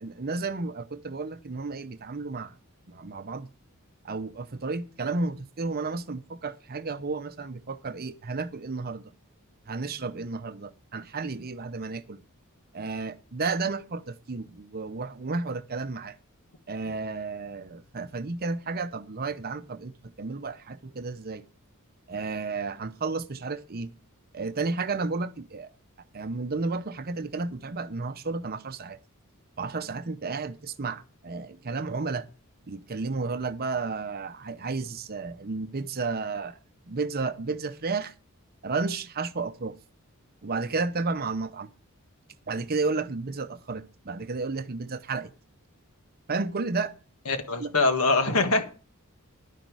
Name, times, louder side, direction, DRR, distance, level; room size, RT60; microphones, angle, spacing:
voice 1, 0.0-2.6 2.9-3.5 4.0-9.1 9.7-12.2 12.7-16.2 16.7-21.4 22.1-23.9 24.3-25.7 26.1-29.0 29.6-32.3 32.7-36.6 36.9-38.1 38.6-39.8 40.4-41.7 42.5-45.3 46.3-46.9 47.6-47.7, right 3 dB, 45° right, 0.8 m, -32 dB
voice 2, 47.2-48.6, left 3 dB, 80° left, 1.6 m, -23 dB
11.5 x 9.5 x 4.8 m
head